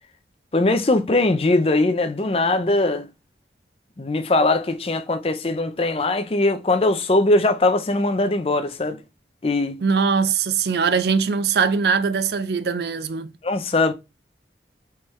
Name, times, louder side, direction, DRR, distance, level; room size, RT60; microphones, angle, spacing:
voice 1, 0.5-3.1 4.0-9.0 9.4-9.8 13.4-13.9, left 2 dB, 35° left, 0.6 m, -20 dB
voice 2, 9.8-13.3, right 5 dB, 65° right, 0.5 m, -21 dB
4.5 x 3.4 x 3.1 m
head